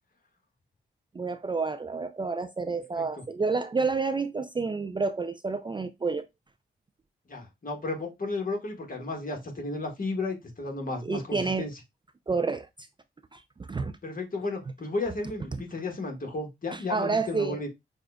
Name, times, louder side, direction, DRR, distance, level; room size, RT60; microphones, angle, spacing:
voice 1, 1.1-6.2 11.0-11.6 12.3-12.7 13.3-13.4 13.7-13.9 16.7-17.6, right 4 dB, 25° right, 0.4 m, -29 dB
voice 2, 7.3-11.7 14.0-17.7, left 3 dB, 40° left, 1.6 m, -33 dB
6.2 x 2.4 x 2.2 m
cardioid pair, 55°, 21 cm